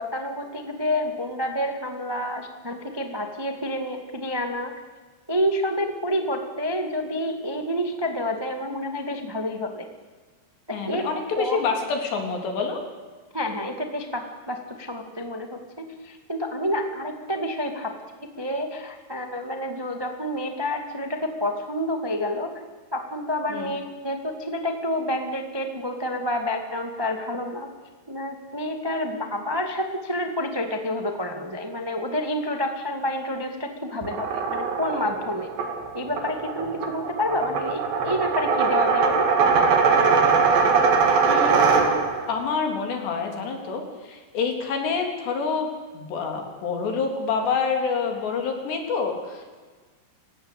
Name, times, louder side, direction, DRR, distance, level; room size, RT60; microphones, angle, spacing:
voice 1, 0.0-4.7 5.3-9.9 10.7-11.1 11.4-11.6 13.3-22.5 22.9-27.7 28.1-35.5 35.9-39.3, left 1 dB, 30° right, 5 dB, 0.4 m, -29 dB
voice 2, 10.7-12.8 23.5-23.7 41.3-41.9 42.3-45.7 45.9-49.5, left 5 dB, 75° left, 3 dB, 5.7 m, -27 dB
sound 1, 34.0-42.3, right 5 dB, 80° right, 4.9 m, -21 dB
29.5 x 16.5 x 8.4 m, 1.4 s
omnidirectional pair, 4.9 m